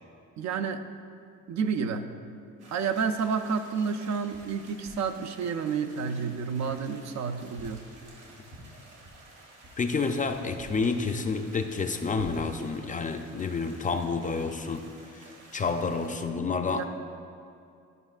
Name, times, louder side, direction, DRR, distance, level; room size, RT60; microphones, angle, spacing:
voice 1, 0.4-0.8 1.5-2.1 2.7-7.9 16.7-16.8, right 6 dB, 65° right, 7 dB, 0.5 m, -30 dB
sound 1, 2.6-16.2, right 1 dB, 85° right, 1.6 m, -50 dB
voice 2, 9.8-16.8, left 4 dB, 25° left, 6 dB, 0.4 m, -29 dB
12.5 x 5.2 x 2.4 m, 2.5 s
cardioid pair, 90°, 30 cm